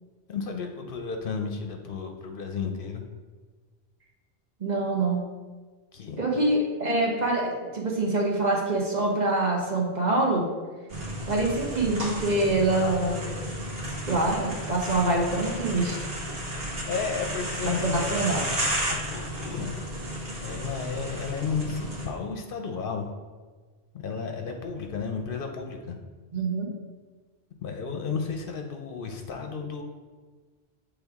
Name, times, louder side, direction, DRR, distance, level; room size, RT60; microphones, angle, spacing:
voice 1, 0.3-3.0 5.9-6.2 16.5-18.2 18.9-19.8 20.4-23.1 23.9-26.0 27.6-29.8, left 5 dB, 60° left, 4 dB, 0.8 m, -33 dB
voice 2, 4.6-5.2 6.2-10.4 11.3-13.2 14.1-16.1 17.6-18.5 26.3-26.7, right 2 dB, 45° right, -1 dB, 1.0 m, -25 dB
sound 1, 10.9-22.1, right 1 dB, 65° right, 1.6 m, -33 dB
8.0 x 3.4 x 3.6 m, 1.4 s
omnidirectional pair, 1.1 m